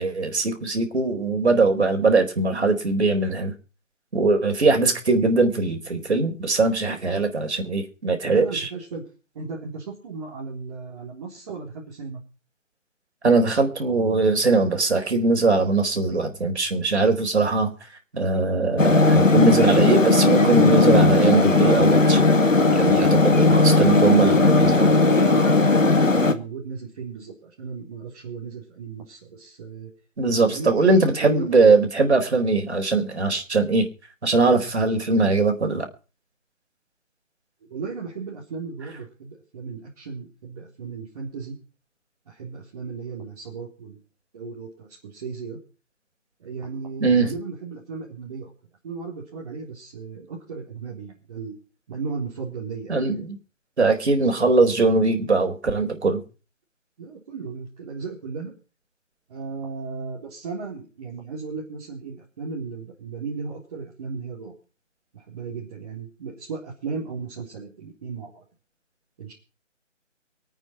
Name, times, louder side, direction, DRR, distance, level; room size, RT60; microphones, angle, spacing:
voice 1, 0.0-3.5 4.1-8.7 13.2-17.7 18.1-22.2 22.7-25.0 30.2-33.9 34.2-35.9 47.0-47.3 52.9-53.4 53.8-56.2, right 3 dB, 60° right, 5 dB, 4.4 m, -21 dB
voice 2, 8.2-9.0 9.3-12.2 23.9-29.9 30.4-31.5 37.7-41.6 42.3-44.0 44.3-45.6 46.4-48.5 48.8-51.6 51.9-53.2 54.3-54.5 57.0-58.5 59.3-64.5 65.1-68.3 69.2-69.3, right 4 dB, 30° right, -5 dB, 4.0 m, -35 dB
sound 1, 18.8-26.3, left 3 dB, 85° left, 2.2 m, -17 dB
24.5 x 9.1 x 4.5 m, 0.36 s
figure-of-eight pair, 155°, 38 cm